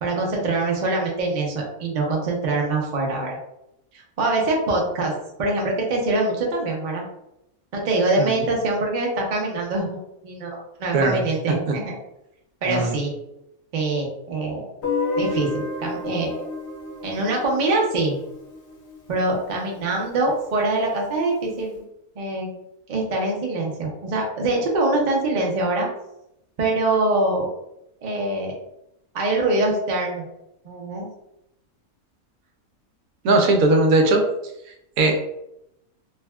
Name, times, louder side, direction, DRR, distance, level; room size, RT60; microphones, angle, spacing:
voice 1, 0.0-3.4 4.2-5.1 5.4-7.0 7.7-12.0 12.6-13.1 13.7-14.7 15.2-16.5 17.0-18.2 19.1-21.8 22.2-22.5 22.9-25.9 26.6-27.5 28.0-28.6 29.1-30.3 30.6-31.1, right 2 dB, 55° right, -1 dB, 0.5 m, -24 dB
voice 2, 12.7-13.0 33.2-34.2 35.0-35.4, right 2 dB, 75° right, 2 dB, 1.0 m, -19 dB
Guitar, 14.8-19.7, left 3 dB, 55° left, 0.9 m, -31 dB
3.5 x 2.2 x 2.2 m, 0.83 s
omnidirectional pair, 1.5 m